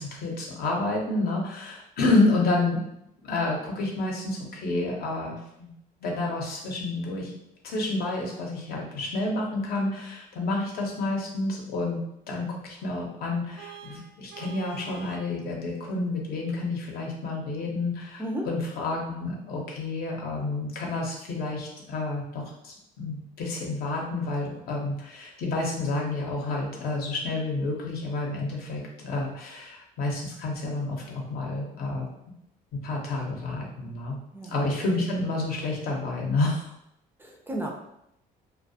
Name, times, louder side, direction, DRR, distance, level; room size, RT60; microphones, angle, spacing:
voice 1, 0.0-2.9 3.2-5.7 6.0-7.3 7.6-12.0 12.3-32.1 32.7-34.2 34.5-36.7, left 2 dB, 65° left, -1 dB, 0.7 m, -29 dB
Vehicle horn car horn honking, 13.6-15.3, right 8 dB, 85° right, 0.5 m, -45 dB
voice 2, 37.2-37.7, right 1 dB, 15° right, -1 dB, 0.3 m, -33 dB
2.3 x 2.2 x 2.6 m, 0.78 s
cardioid pair, 110°, 17 cm